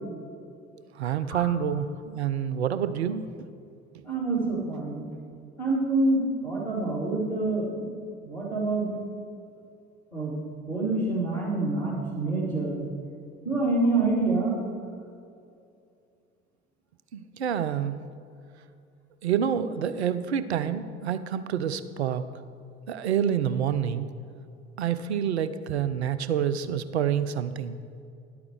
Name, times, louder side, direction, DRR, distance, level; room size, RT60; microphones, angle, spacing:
voice 1, 1.0-3.5 17.1-17.9 19.2-22.2 22.9-24.1 24.8-27.7, right 8 dB, 80° right, 12 dB, 0.5 m, -27 dB
voice 2, 4.1-5.1 5.6-7.9 8.2-8.9 10.1-10.3 10.7-12.8 13.4-14.6, right 2 dB, 90° left, -7 dB, 2.6 m, -26 dB
11.0 x 8.5 x 4.8 m, 2.5 s
figure-of-eight pair, 55°, 32 cm